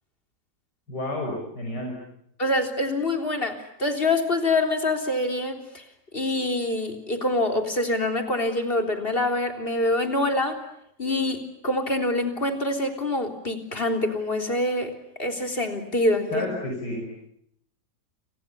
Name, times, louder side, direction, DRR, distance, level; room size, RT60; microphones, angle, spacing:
voice 1, 0.9-1.9 16.3-17.0, left 1 dB, 80° left, 1 dB, 6.4 m, -30 dB
voice 2, 2.4-5.8 6.1-10.6 11.0-14.9 15.2-16.5, left 2 dB, 30° left, 5 dB, 3.9 m, -25 dB
29.5 x 28.5 x 7.0 m, 0.73 s
omnidirectional pair, 1.8 m